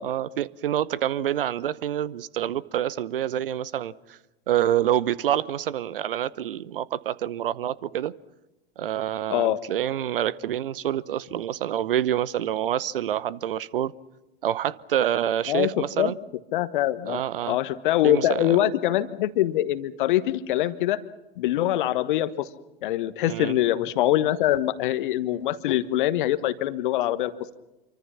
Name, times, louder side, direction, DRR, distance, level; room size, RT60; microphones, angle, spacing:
voice 1, 0.0-4.2 4.5-8.1 8.8-13.9 14.4-16.1 17.1-17.6 18.0-18.7 23.2-23.6, right 11 dB, 65° right, 0.9 m, -27 dB
voice 2, 15.5-16.1 16.5-17.2 17.5-21.0 21.4-22.5 22.8-27.3, left 13 dB, 55° left, 1.4 m, -24 dB
27.5 x 24.0 x 5.8 m
figure-of-eight pair, 85°, 30 cm